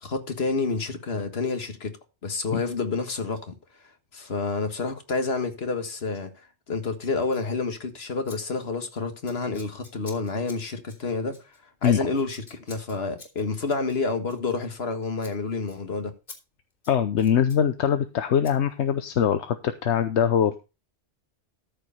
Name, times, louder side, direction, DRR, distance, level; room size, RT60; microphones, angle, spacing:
voice 1, 0.0-1.9 2.2-3.6 4.1-11.4 11.8-16.1, left 4 dB, 65° left, 1.8 m, -29 dB
Scissors, 7.2-7.5 8.3-8.4 8.6-8.9 9.2-14.9 15.2-15.4 15.7-15.8 16.3-16.4 16.7-17.6 18.4-18.6, left 3 dB, 50° left, 3.4 m, -49 dB
voice 2, 16.9-20.6, left 8 dB, 80° left, 1.1 m, -22 dB
14.0 x 4.9 x 5.5 m
omnidirectional pair, 1.1 m